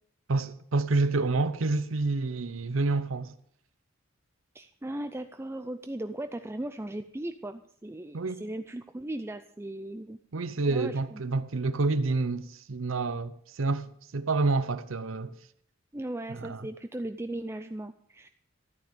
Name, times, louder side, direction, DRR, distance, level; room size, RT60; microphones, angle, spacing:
voice 1, 0.3-3.3 8.1-8.4 10.3-15.4 16.3-16.7, right 3 dB, 80° right, 0.7 m, -28 dB
voice 2, 4.5-10.2 10.7-11.2 15.9-18.3, right 1 dB, 15° right, 0.5 m, -37 dB
14.0 x 9.6 x 6.8 m
head